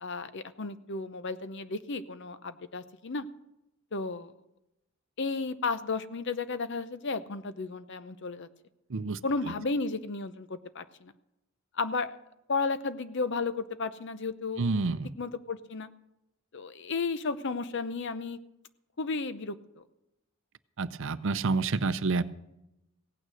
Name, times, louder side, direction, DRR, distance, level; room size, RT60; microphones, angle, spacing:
voice 1, 0.0-3.3 3.9-4.3 5.2-8.5 9.2-11.1 11.7-12.2 12.5-14.6 15.2-15.9 16.5-18.4 19.0-19.8, left 4 dB, 60° left, 13 dB, 0.7 m, -33 dB
voice 2, 14.6-15.1 20.8-22.2, right 3 dB, 60° right, 14 dB, 0.6 m, -28 dB
16.5 x 9.2 x 6.3 m, 0.88 s
head